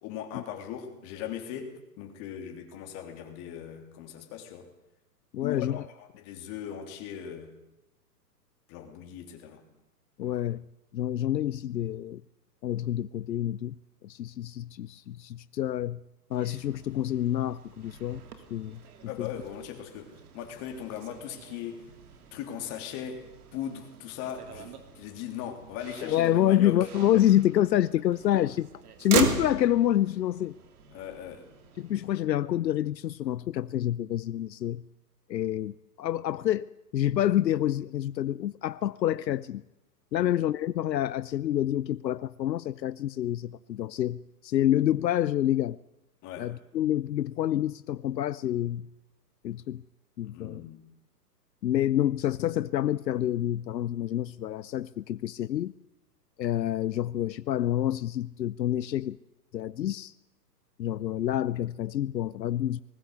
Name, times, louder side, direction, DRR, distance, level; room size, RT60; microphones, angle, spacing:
voice 1, 0.0-4.7 5.4-7.5 8.7-9.6 19.1-21.8 22.3-23.2 23.5-26.9 30.9-31.4 40.1-40.3 46.2-46.5 50.2-50.8, left 9 dB, 30° left, 4 dB, 3.4 m, -39 dB
voice 2, 5.3-5.8 10.2-10.6 10.9-12.2 12.6-13.8 14.0-16.0 16.3-18.2 18.5-19.3 26.0-28.7 29.0-30.5 31.8-34.8 35.3-39.6 40.1-45.8 46.4-48.9 49.4-49.8 50.2-50.6 51.6-55.7 56.4-59.2 59.5-60.1 60.8-62.8, left 12 dB, 85° left, 17 dB, 0.7 m, -27 dB
Motor vehicle (road), 16.3-32.1, right 7 dB, 60° right, 2.9 m, -39 dB
20.0 x 17.5 x 8.1 m, 0.93 s
hypercardioid pair, 140°, 49 cm